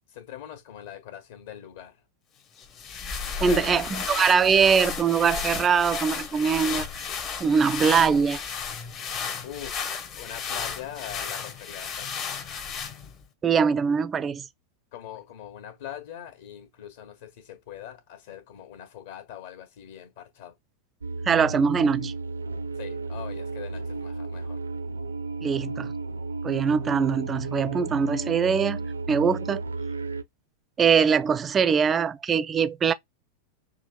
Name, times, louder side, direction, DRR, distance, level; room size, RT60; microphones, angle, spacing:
voice 1, 0.1-2.0 3.4-4.2 9.4-12.3 14.9-20.6 22.8-24.6, left 10 dB, 55° left, 1.5 m, -42 dB
sound 1, 2.6-13.2, left 6 dB, 35° left, 1.0 m, -33 dB
voice 2, 3.4-6.9 7.4-8.4 13.4-14.5 21.3-22.1 25.4-25.9 26.4-29.6 30.8-32.9, right 6 dB, 20° right, 0.4 m, -22 dB
sound 2, 21.0-30.2, right 3 dB, 75° right, 0.5 m, -33 dB
6.3 x 3.1 x 2.3 m
figure-of-eight pair, 90°, 0 cm